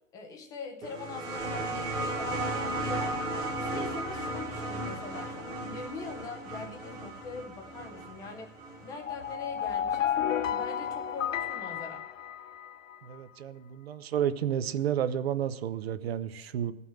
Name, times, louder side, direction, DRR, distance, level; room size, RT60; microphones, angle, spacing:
voice 1, 0.1-3.2 3.6-8.5 8.8-10.1 10.5-12.0, left 4 dB, 10° left, 3 dB, 0.7 m, -42 dB
sound 1, 0.8-10.1 11.2-11.3, right 1 dB, 10° right, 1.3 m, -35 dB
sound 2, 1.2-11.8 12.1-12.3, equal, 85° right, 1.5 m, -55 dB
sound 3, 9.0-13.0, left 9 dB, 85° left, 0.7 m, -32 dB
voice 2, 13.0-16.7, right 9 dB, 55° right, 13 dB, 0.8 m, -31 dB
15.0 x 5.6 x 7.7 m, 1.0 s
hypercardioid pair, 160°, 38 cm